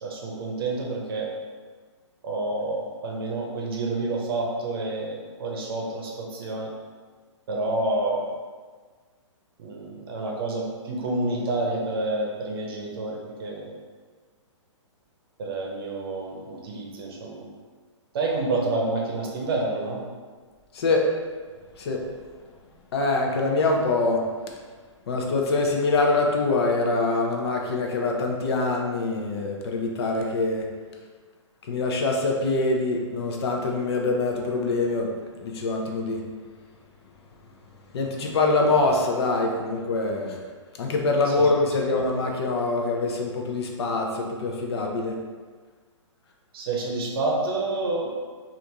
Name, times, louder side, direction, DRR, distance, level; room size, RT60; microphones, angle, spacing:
voice 1, 0.0-1.3 2.2-6.7 7.5-8.3 9.6-13.6 15.4-17.4 18.1-20.0 41.3-41.5 41.9-42.0 46.5-48.1, right 2 dB, 50° right, -1 dB, 0.7 m, -28 dB
voice 2, 20.7-21.1 21.8-22.0 22.9-24.3 25.1-30.7 31.6-35.1 35.4-36.3 37.9-40.4 40.8-45.2, left 3 dB, 55° left, 1 dB, 0.5 m, -24 dB
3.4 x 2.5 x 2.7 m, 1.5 s
hypercardioid pair, 150°, 16 cm